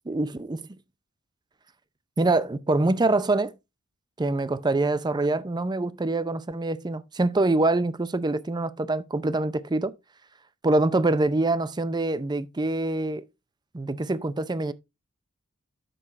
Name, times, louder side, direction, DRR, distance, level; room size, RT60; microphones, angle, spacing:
voice 1, 0.1-0.6 2.2-3.5 4.2-9.9 10.6-13.2 13.7-14.7, right 2 dB, 20° right, 0.5 m, -25 dB
7.8 x 6.1 x 4.0 m
head